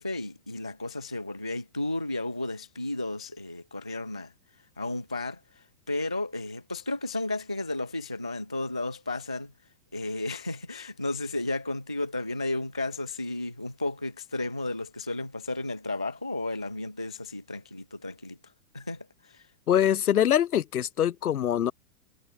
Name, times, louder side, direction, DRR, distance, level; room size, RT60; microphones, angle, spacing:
voice 1, 0.0-4.3 4.8-9.5 9.9-18.4 18.7-19.4, left 2 dB, 5° right, 0.3 m, -33 dB
voice 2, 19.7-21.7, left 10 dB, 75° left, 4.0 m, -24 dB
hypercardioid pair, 165°, 44 cm